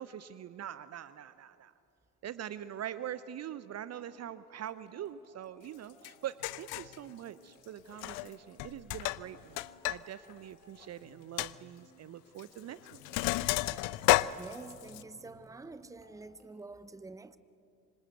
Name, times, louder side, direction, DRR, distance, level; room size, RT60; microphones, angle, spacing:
voice 1, 0.0-1.7 2.2-13.0, right 10 dB, 35° right, 0.8 m, -43 dB
sound 1, 4.5-16.8, equal, 90° right, 4.6 m, -62 dB
Sink (filling or washing), 6.0-6.1 6.4-7.0 7.9-8.3 8.6-10.0 10.3-10.4 10.8-10.9 11.4-11.5 12.4-12.6 12.9-15.0, left 20 dB, 55° left, 0.7 m, -31 dB
voice 2, 13.7-17.4, right 3 dB, 5° right, 0.9 m, -48 dB
26.0 x 25.5 x 8.0 m
figure-of-eight pair, 55°, 45 cm